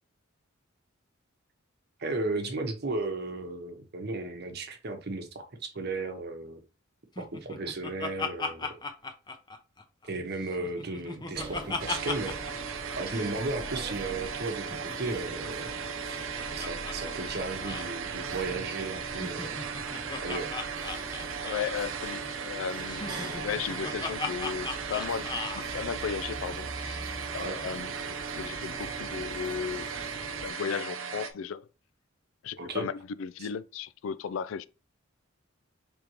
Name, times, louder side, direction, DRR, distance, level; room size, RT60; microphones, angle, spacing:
voice 1, 2.0-6.6 7.2-8.7 10.0-12.4 13.0-15.7 16.1-16.2 16.5-19.5 20.2-20.5 27.4-27.6 32.6-32.9 33.4-33.5, right 2 dB, 50° right, 0.9 m, -35 dB
Laughter, 7.2-10.1 10.4-12.5 12.8-12.9 13.1-13.3 14.6-16.9 17.2-17.3 17.6-17.9 19.0-21.8 22.9-25.6, left 4 dB, 20° left, 0.5 m, -37 dB
sound 1, 11.3-30.5, right 2 dB, 20° right, 1.3 m, -42 dB
sound 2, 11.8-31.3, right 6 dB, 70° right, 0.6 m, -37 dB
voice 2, 21.4-27.0 27.3-29.9 30.4-31.7 32.4-34.7, left 7 dB, 70° left, 0.3 m, -35 dB
5.0 x 3.5 x 3.0 m
head